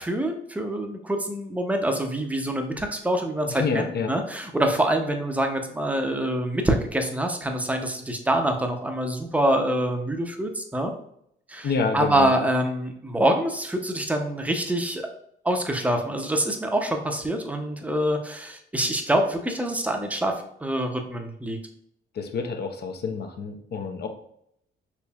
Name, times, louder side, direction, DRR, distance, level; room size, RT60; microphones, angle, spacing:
voice 1, 0.0-10.9 11.5-15.1 15.4-20.3 20.6-21.6, right 1 dB, 5° right, 4 dB, 0.6 m, -25 dB
voice 2, 3.5-4.1 11.6-12.3 22.2-24.1, left 5 dB, 55° left, 5 dB, 0.7 m, -28 dB
4.2 x 3.2 x 2.3 m, 0.72 s
cardioid pair, 90°, 20 cm